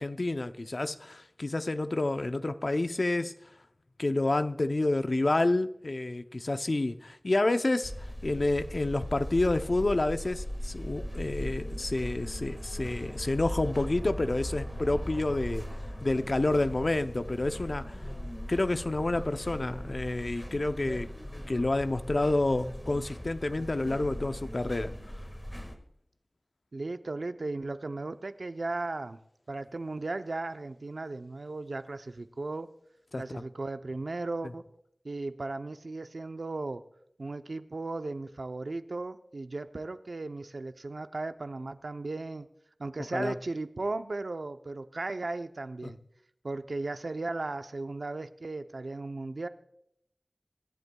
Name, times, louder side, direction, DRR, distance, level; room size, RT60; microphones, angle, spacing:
voice 1, 0.0-3.3 4.0-7.9 8.2-15.6 16.0-18.0 18.5-21.1 21.5-24.9 33.1-33.4 43.1-43.4, left 2 dB, 65° left, 0.6 m, -29 dB
sound 1, 7.8-25.7, equal, 20° left, 1.7 m, -39 dB
voice 2, 26.7-29.2 29.5-32.7 33.2-34.7 35.0-36.8 37.2-42.5 42.8-46.0 46.4-49.5, right 2 dB, 85° right, 0.6 m, -36 dB
25.0 x 11.0 x 2.3 m
wide cardioid pair, 55°, 0 cm